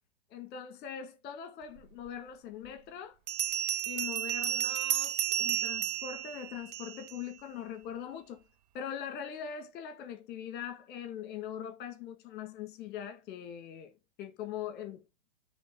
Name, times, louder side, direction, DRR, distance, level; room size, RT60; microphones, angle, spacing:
voice 1, 0.3-3.2 3.9-8.4 8.7-13.9 14.2-15.1, left 9 dB, 30° left, 2.1 m, -42 dB
Bell, 2.1-2.2 3.3-7.2, right 10 dB, 40° right, 0.8 m, -32 dB
8.5 x 3.9 x 4.8 m
figure-of-eight pair, 110°, 33 cm